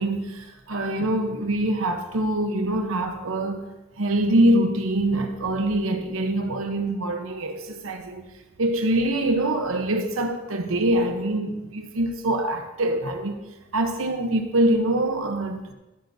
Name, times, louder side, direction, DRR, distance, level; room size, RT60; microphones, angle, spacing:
voice 1, 0.0-3.7 4.0-8.2 8.6-13.4 13.7-15.7, right 1 dB, 80° right, 5 dB, 1.0 m, -24 dB
14.5 x 9.1 x 2.8 m, 1.0 s
head